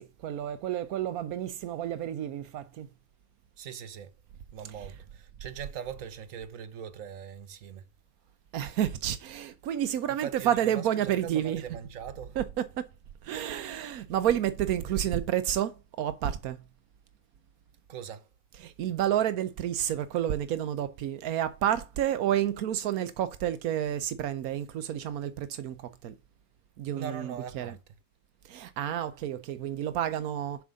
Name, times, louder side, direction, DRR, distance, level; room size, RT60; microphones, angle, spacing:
voice 1, 0.0-2.9 4.7-4.9 8.5-11.7 12.4-12.8 13.2-16.6 18.5-26.1 26.8-27.8 28.4-30.6, right 11 dB, 85° right, 1.2 m, -30 dB
voice 2, 3.6-4.1 4.5-7.8 10.2-12.4 17.9-18.3 26.9-27.8, right 8 dB, 70° right, 1.4 m, -41 dB
7.3 x 6.0 x 5.2 m
omnidirectional pair, 1.5 m